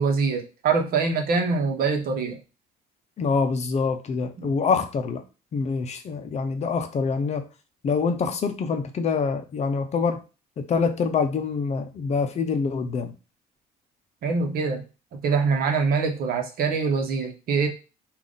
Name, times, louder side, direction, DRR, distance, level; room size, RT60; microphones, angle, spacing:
voice 1, 0.0-2.4 4.4-4.5 14.2-14.8 15.1-17.7, right 4 dB, 60° right, 1.0 m, -24 dB
voice 2, 3.2-5.2 5.5-7.5 7.8-10.2 10.6-13.1, left 5 dB, 40° left, 0.6 m, -25 dB
3.5 x 2.5 x 3.8 m
cardioid pair, 110°, 17 cm